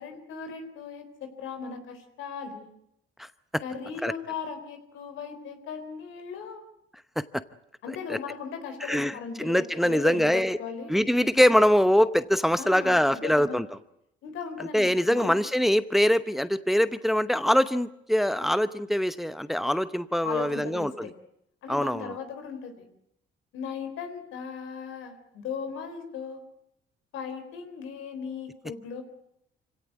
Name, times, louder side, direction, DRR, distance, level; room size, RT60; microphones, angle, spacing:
voice 1, 0.0-2.7 3.6-6.7 7.8-10.9 12.6-13.6 14.2-15.4 20.2-21.1 21.6-22.9 23.5-26.4 27.1-29.0, left 6 dB, 85° left, 7 dB, 4.0 m, -37 dB
voice 2, 8.8-10.6 10.9-13.6 14.7-21.1 21.7-22.1, equal, ahead, 13 dB, 0.8 m, -23 dB
25.5 x 17.5 x 9.5 m, 0.78 s
cardioid pair, 90°, 20 cm